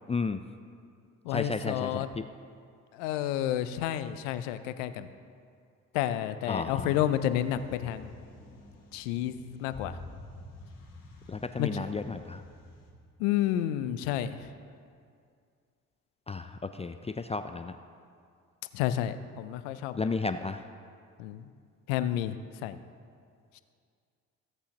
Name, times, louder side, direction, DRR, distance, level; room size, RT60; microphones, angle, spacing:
voice 1, 0.1-0.4 1.3-2.2 6.5-7.0 11.3-12.4 16.3-17.7 19.9-20.6, left 4 dB, 15° left, 9 dB, 0.4 m, -33 dB
voice 2, 1.2-2.1 2.9-5.1 5.9-8.1 8.9-10.0 11.6-11.9 13.2-14.4 18.7-20.1 21.2-21.5 21.9-22.3 22.6-22.8, left 11 dB, 80° left, 12 dB, 0.6 m, -30 dB
sound 1, 6.7-12.9, left 2 dB, 60° left, 2.6 m, -48 dB
16.0 x 8.3 x 2.9 m, 2.3 s
hypercardioid pair, 50°, 37 cm